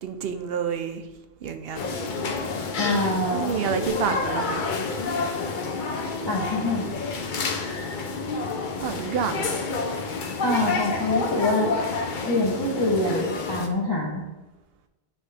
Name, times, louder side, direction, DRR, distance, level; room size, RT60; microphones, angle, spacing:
voice 1, 0.0-1.1 1.4-1.8 3.3-4.6 8.8-9.6, right 7 dB, 70° right, 7 dB, 0.8 m, -28 dB
sound 1, 1.7-13.7, left 4 dB, 55° left, 0.7 m, -29 dB
voice 2, 2.8-3.6 6.3-6.9 10.4-11.7 12.2-14.2, left 2 dB, 25° left, -6 dB, 0.9 m, -25 dB
9.0 x 3.3 x 3.4 m, 1.1 s
omnidirectional pair, 1.1 m